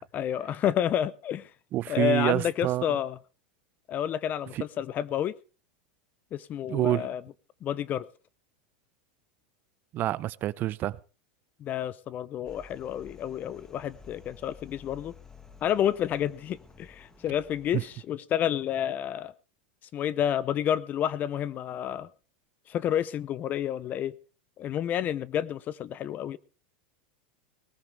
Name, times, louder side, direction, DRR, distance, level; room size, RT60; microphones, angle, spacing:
voice 1, 0.1-1.5 1.9-3.2 3.9-5.3 6.3-7.2 7.6-8.1 11.6-15.1 15.6-19.3 19.9-22.1 22.7-24.1 24.6-26.4, left 10 dB, 35° left, 0.6 m, -30 dB
voice 2, 1.7-2.8 4.5-4.6 6.7-7.1 9.9-11.0 17.7-17.8, right 15 dB, 40° right, 0.6 m, -27 dB
sound 1, 12.4-18.0, left 4 dB, 10° left, 1.7 m, -52 dB
19.0 x 14.0 x 3.4 m
supercardioid pair, 125°, 5 cm